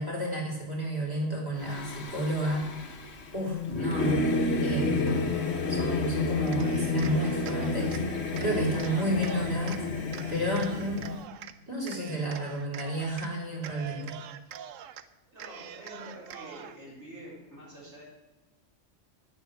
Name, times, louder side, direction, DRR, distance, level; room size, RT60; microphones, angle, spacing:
voice 1, 0.0-2.9 3.3-4.3 4.6-5.3 5.7-8.0 8.4-9.9 10.3-11.1 11.7-14.2, right 1 dB, 15° right, -3 dB, 3.7 m, -31 dB
Singing / Musical instrument, 1.6-11.2, left 3 dB, 60° left, 1.4 m, -30 dB
Cheering, 6.5-8.0 8.4-9.8 10.1-11.5 11.9-13.3 13.6-15.0 15.4-16.8, right 9 dB, 90° right, 1.0 m, -44 dB
voice 2, 15.3-18.0, equal, 60° right, -6 dB, 4.7 m, -46 dB
9.8 x 7.1 x 8.0 m, 1.1 s
omnidirectional pair, 1.3 m